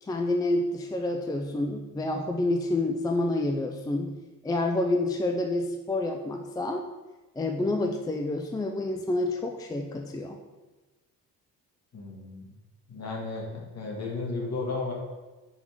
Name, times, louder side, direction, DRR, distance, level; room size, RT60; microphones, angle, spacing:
voice 1, 0.0-4.2 4.4-6.8 7.4-10.4, left 2 dB, 10° left, 3 dB, 0.4 m, -28 dB
voice 2, 11.9-12.5 12.9-14.9, left 3 dB, 50° left, -2 dB, 1.7 m, -34 dB
5.4 x 3.6 x 4.8 m, 1.2 s
cardioid pair, 95°, 33 cm